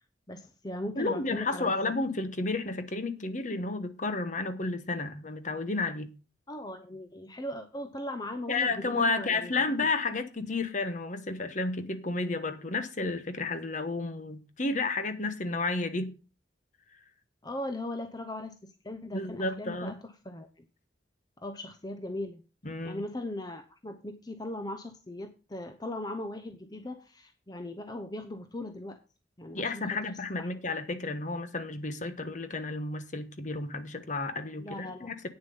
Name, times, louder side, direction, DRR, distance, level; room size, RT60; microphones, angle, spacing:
voice 1, 0.3-1.7 6.5-9.5 17.4-20.6 21.4-22.4 22.8-29.0 29.4-30.6 34.6-35.1, left 1 dB, 20° left, 0.8 m, -39 dB
voice 2, 1.0-6.1 8.5-16.1 19.1-19.9 22.6-23.0 29.5-35.3, left 3 dB, 45° left, 1.2 m, -32 dB
9.0 x 7.1 x 5.5 m
head